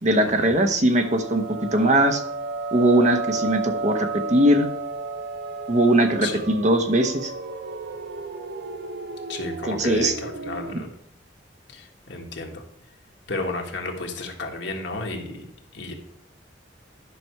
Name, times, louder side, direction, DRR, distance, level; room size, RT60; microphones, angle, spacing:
voice 1, 0.0-2.2 2.7-4.7 5.7-7.3 9.7-10.1, right 1 dB, 40° right, 6 dB, 1.0 m, -20 dB
sound 1, 0.9-10.8, right 3 dB, 60° right, 0.7 m, -33 dB
voice 2, 9.3-10.9 11.7-12.6 13.3-15.5 15.7-15.9, left 2 dB, 70° left, 1 dB, 1.6 m, -32 dB
10.5 x 5.9 x 4.6 m, 0.68 s
head